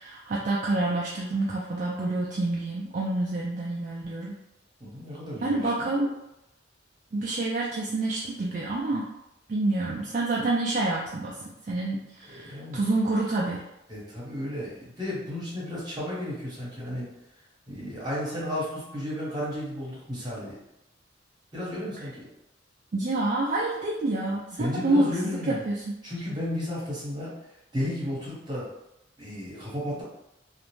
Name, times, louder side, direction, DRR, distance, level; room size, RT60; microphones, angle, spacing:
voice 1, 0.0-4.4 5.4-6.1 7.1-9.1 9.5-13.7 22.9-25.9, right 2 dB, 45° right, -4 dB, 0.3 m, -28 dB
voice 2, 4.8-5.9 12.3-12.8 13.9-17.1 17.7-20.6 21.5-22.3 24.6-25.6 26.0-27.4 27.7-28.7 29.2-30.0, left 1 dB, 25° right, -7 dB, 1.0 m, -33 dB
2.4 x 2.1 x 3.0 m, 0.86 s
head